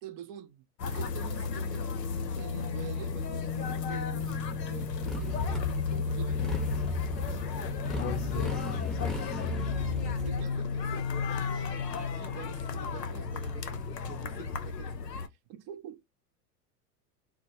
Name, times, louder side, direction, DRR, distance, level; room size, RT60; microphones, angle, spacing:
voice 1, 0.0-5.3 5.9-6.6 7.2-7.5 10.1-14.9 15.5-16.0, right 10 dB, 40° right, 0.6 m, -47 dB
sound 1, 0.8-15.3, left 5 dB, 90° left, 0.6 m, -33 dB
Motorcycle, 5.0-10.4, left 2 dB, ahead, 0.7 m, -36 dB
voice 2, 7.9-9.7, left 9 dB, 45° left, 0.5 m, -40 dB
2.2 x 2.1 x 2.8 m
hypercardioid pair, 90°, 48 cm